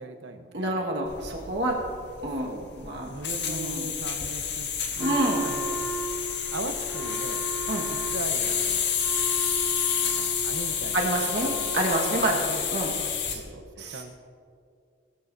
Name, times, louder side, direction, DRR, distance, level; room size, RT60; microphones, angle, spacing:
voice 1, 0.0-0.8 2.4-2.7 3.1-5.8 6.5-7.4 7.9-8.8 9.6-9.7 10.0-11.8 12.2-12.6 13.3-14.2, right 3 dB, 85° right, 7 dB, 1.0 m, -39 dB
voice 2, 0.5-1.8 2.2-2.5 2.8-3.1 3.4-3.9 5.0-5.5 7.7-7.8 10.9-12.4 12.7-12.9 13.3-13.4 13.8-14.0, right 1 dB, 60° right, -2 dB, 1.7 m, -28 dB
sound 1, 1.1-13.4, left 7 dB, 65° left, 1.7 m, -29 dB
Wind instrument woodwind instrument, 5.0-12.9, equal, 5° right, 0.9 m, -37 dB
21.0 x 13.5 x 2.7 m, 2.4 s
head